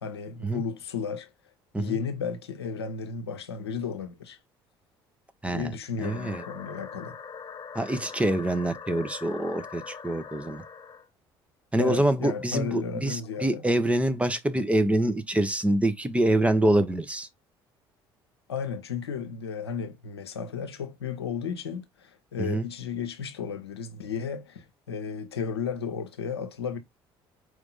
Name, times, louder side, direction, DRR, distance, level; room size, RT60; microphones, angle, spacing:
voice 1, 0.0-1.3 1.8-4.4 5.4-7.1 11.8-13.6 18.5-26.8, left 6 dB, 90° left, 0.6 m, -34 dB
sound 1, 6.0-11.1 11.9-14.3, left 6 dB, 35° left, 1.1 m, -43 dB
voice 2, 6.0-6.4 7.7-10.6 11.7-17.3 22.4-22.7, right 1 dB, 10° right, 0.8 m, -25 dB
4.5 x 2.7 x 3.9 m
hypercardioid pair, 55°, 13 cm